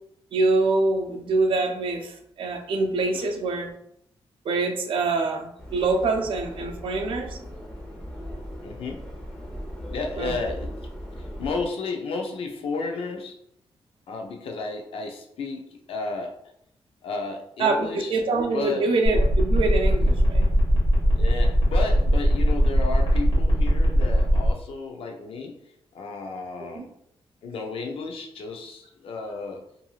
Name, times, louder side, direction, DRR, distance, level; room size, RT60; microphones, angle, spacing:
voice 1, 0.3-3.7 4.4-7.4 10.2-10.3 17.6-20.5 26.7-26.8, right 3 dB, 65° right, 4 dB, 0.4 m, -25 dB
Subway metro underground, 5.6-11.7, equal, 5° left, 0.7 m, -38 dB
voice 2, 8.6-9.1 9.9-10.9 11.2-13.4 14.1-16.3 17.0-18.1 18.5-18.9 21.2-25.6 25.9-26.9 27.4-29.6, left 3 dB, 75° left, 3 dB, 0.5 m, -33 dB
sound 1, 19.1-24.5, equal, 55° left, 1.3 m, -21 dB
3.0 x 2.6 x 2.3 m, 0.74 s
wide cardioid pair, 165°, 10 cm